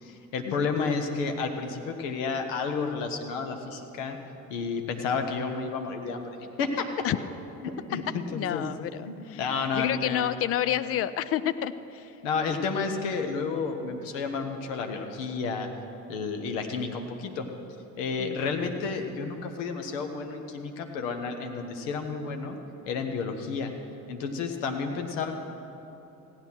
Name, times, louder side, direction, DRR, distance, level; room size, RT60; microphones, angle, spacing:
voice 1, 0.0-4.2 4.5-7.0 7.6-8.7 9.0-10.2 12.2-15.7 16.1-17.5 18.0-22.6 22.8-23.7 24.1-25.3, left 4 dB, 60° left, 5 dB, 1.4 m, -31 dB
voice 2, 8.3-9.4 9.7-12.1 18.2-18.4, left 11 dB, 35° left, 14 dB, 0.5 m, -29 dB
15.5 x 9.5 x 6.3 m, 3.0 s
figure-of-eight pair, 60°, 43 cm